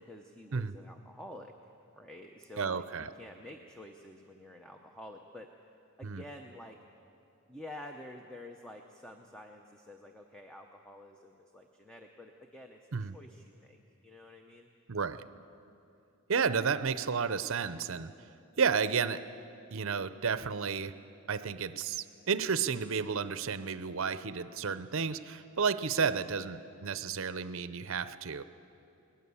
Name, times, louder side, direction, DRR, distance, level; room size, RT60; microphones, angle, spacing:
voice 1, 0.0-1.5 1.9-5.5 6.0-6.8 7.5-14.7, left 1 dB, 5° left, 3 dB, 0.7 m, -49 dB
voice 2, 2.6-3.1 6.0-6.2 12.9-13.2 14.9-15.3 16.3-18.1 18.6-19.3 19.7-21.0 21.3-28.4, right 6 dB, 60° right, 14 dB, 0.6 m, -32 dB
20.5 x 19.0 x 7.1 m, 2.7 s
head